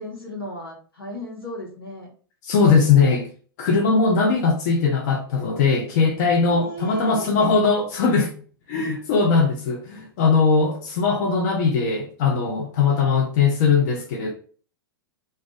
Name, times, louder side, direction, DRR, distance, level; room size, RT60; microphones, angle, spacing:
voice 1, 0.0-2.1 6.5-7.5, equal, 85° left, 1.3 m, -36 dB
voice 2, 2.4-3.3 3.6-8.3 8.7-14.3, left 5 dB, 50° left, 0.7 m, -20 dB
2.6 x 2.4 x 3.9 m
figure-of-eight pair, 105°, 12 cm